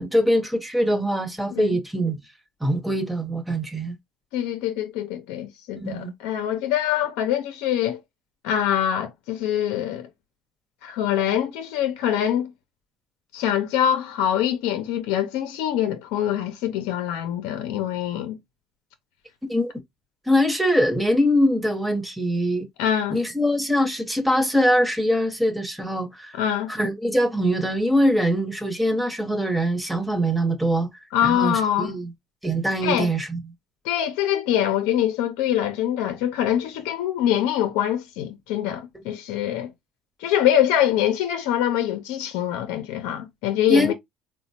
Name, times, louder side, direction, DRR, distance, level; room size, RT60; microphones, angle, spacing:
voice 1, 0.0-2.2 2.6-3.9 5.8-6.1 19.5-19.7 20.3-22.7 23.1-26.4 26.7-32.1 32.4-33.4 43.7-43.9, equal, ahead, 0.9 m, -23 dB
voice 2, 4.3-8.0 8.4-10.1 10.8-12.5 13.3-18.4 22.8-23.2 26.4-26.7 31.1-31.9 32.8-33.1 33.8-39.7 40.2-43.9, left 10 dB, 80° left, 0.5 m, -24 dB
4.1 x 2.1 x 2.8 m
supercardioid pair, 95°, 0 cm